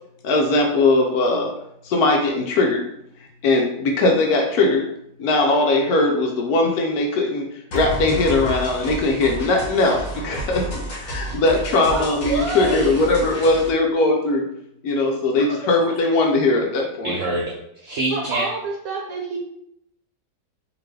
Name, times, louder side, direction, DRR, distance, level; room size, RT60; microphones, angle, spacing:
voice 1, 0.2-1.5 1.8-2.8 3.4-4.8 5.2-7.5 7.7-14.5 14.8-17.1, left 2 dB, 70° left, 1 dB, 1.0 m, -20 dB
sound 1, 7.7-13.7, equal, 50° left, 1.4 m, -30 dB
voice 2, 11.9-13.0 15.4-15.9 18.1-19.4, right 3 dB, 65° right, 0 dB, 1.0 m, -28 dB
voice 3, 17.0-18.5, right 2 dB, 85° right, 1 dB, 0.7 m, -25 dB
3.7 x 2.8 x 3.2 m, 0.76 s
omnidirectional pair, 1.9 m